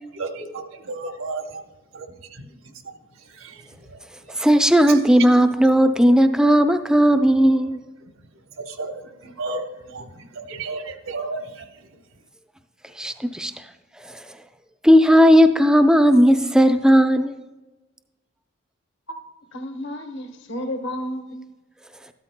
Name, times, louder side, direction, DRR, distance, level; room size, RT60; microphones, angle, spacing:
voice 1, 0.1-1.6 1.9-4.4 4.9-5.0 8.6-11.9, right 3 dB, 70° right, 1.1 m, -34 dB
voice 2, 4.3-7.8 13.0-13.5 14.0-14.3 14.8-17.3, equal, 5° right, 0.5 m, -16 dB
voice 3, 19.5-21.5, equal, 60° left, 1.1 m, -32 dB
13.5 x 12.5 x 2.2 m
head